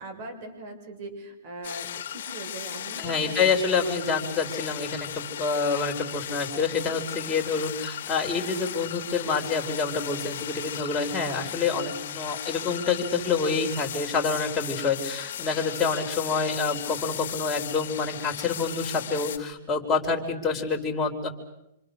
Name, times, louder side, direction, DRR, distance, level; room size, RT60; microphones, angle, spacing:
voice 1, 0.0-3.4 3.8-4.3, right 2 dB, 45° right, 6 dB, 7.0 m, -40 dB
sound 1, 1.6-19.4, left 10 dB, 60° left, 1.8 m, -36 dB
voice 2, 3.0-5.1 5.4-21.3, left 4 dB, 10° left, 0 dB, 4.0 m, -27 dB
27.5 x 26.0 x 6.7 m, 0.80 s
hypercardioid pair, 160°, 0 cm